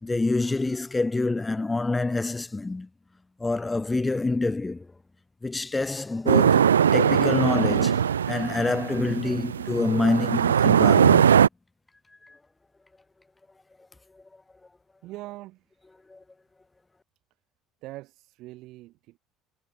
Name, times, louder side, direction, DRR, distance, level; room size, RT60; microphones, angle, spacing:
voice 1, 0.0-2.9 3.4-4.9 5.4-11.4 12.2-12.4 14.1-14.2 16.1-16.2, left 3 dB, 15° left, 4.4 m, -27 dB
sound 1, 6.3-11.5, right 8 dB, 75° right, 0.9 m, -20 dB
voice 2, 15.0-15.7 17.8-19.2, right 18 dB, 55° right, 7.9 m, -42 dB
figure-of-eight pair, 60°, 0 cm